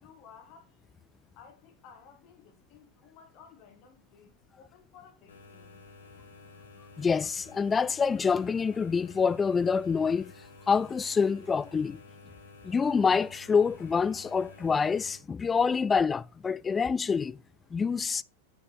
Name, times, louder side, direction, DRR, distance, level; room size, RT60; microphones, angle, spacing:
voice 1, 0.0-0.8 1.4-5.9, left 6 dB, 40° left, 2.0 m, -55 dB
sound 1, 5.3-15.2, left 3 dB, 70° left, 1.7 m, -52 dB
voice 2, 7.0-10.3 10.7-12.0 12.6-17.4 17.7-18.2, left 5 dB, 15° left, 0.3 m, -26 dB
7.5 x 5.2 x 4.2 m
figure-of-eight pair, 90°, 0 cm